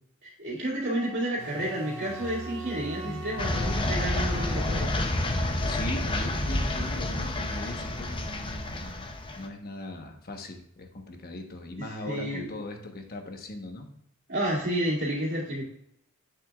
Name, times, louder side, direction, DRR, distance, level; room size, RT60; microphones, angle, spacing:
voice 1, 0.2-4.9 12.0-12.6 14.3-15.6, right 1 dB, 55° right, -7 dB, 2.4 m, -30 dB
Wind instrument woodwind instrument, 0.9-5.1, equal, 5° left, 2.6 m, -43 dB
sound 1, 1.4-8.9, right 2 dB, 70° right, 0.6 m, -42 dB
voice 2, 3.0-3.3 5.6-13.9, left 1 dB, 45° left, 4 dB, 1.1 m, -39 dB
sound 2, 3.4-9.5, left 1 dB, 25° left, 0.7 m, -29 dB
7.9 x 6.8 x 2.4 m, 0.75 s
head